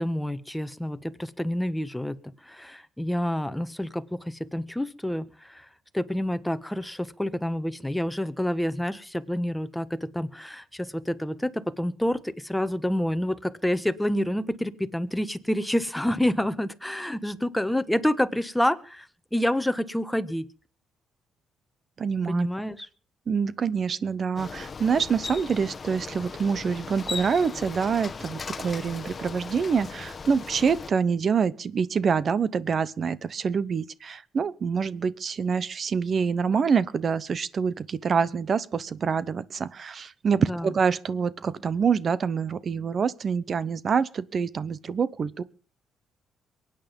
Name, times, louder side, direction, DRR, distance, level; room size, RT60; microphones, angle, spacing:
voice 1, 0.0-2.2 2.4-5.6 5.9-20.5 22.3-22.9 40.5-40.7, left 1 dB, 5° left, 1.3 m, -28 dB
voice 2, 22.0-22.5 23.3-45.4, right 6 dB, 45° right, 0.9 m, -26 dB
Bicycle, 24.4-30.9, left 5 dB, 35° left, 1.1 m, -38 dB
23.0 x 9.3 x 5.3 m
cardioid pair, 90°, 0 cm